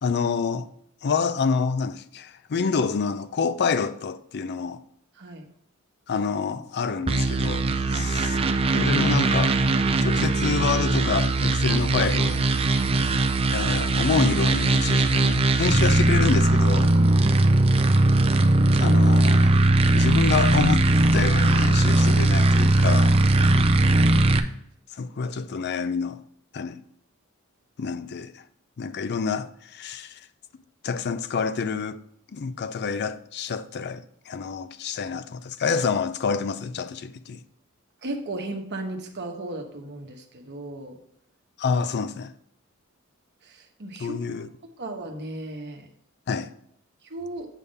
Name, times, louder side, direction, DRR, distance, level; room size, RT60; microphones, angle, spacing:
voice 1, 0.0-0.7 1.0-4.8 6.1-8.4 8.7-9.6 10.0-12.4 13.5-17.0 18.6-19.6 19.9-23.2 24.9-26.2 26.5-26.8 27.8-28.4 28.8-30.2 30.8-32.0 32.3-37.4 41.6-42.3 44.0-44.5 46.3-46.5, left 5 dB, 50° left, 0.4 m, -27 dB
sound 1, 7.1-24.4, right 2 dB, 25° right, 0.4 m, -20 dB
voice 2, 12.7-13.2 17.0-18.0 23.4-23.6 38.0-41.0 43.4-44.4 44.8-45.8 47.0-47.5, right 2 dB, 50° right, 1.1 m, -36 dB
8.2 x 3.6 x 5.4 m
head